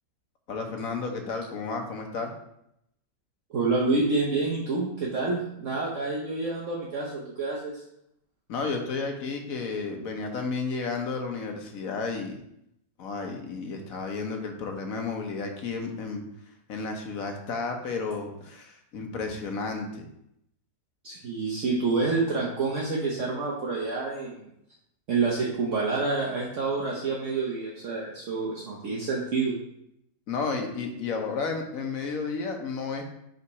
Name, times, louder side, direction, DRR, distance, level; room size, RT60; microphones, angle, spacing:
voice 1, 0.5-2.3 8.5-12.4 13.0-16.2 16.7-20.0 30.3-33.0, left 4 dB, 65° left, 3 dB, 1.3 m, -32 dB
voice 2, 3.5-7.8 21.0-24.5 25.1-29.5, right 3 dB, 55° right, -4 dB, 1.2 m, -28 dB
5.7 x 4.1 x 4.6 m, 0.77 s
omnidirectional pair, 1.6 m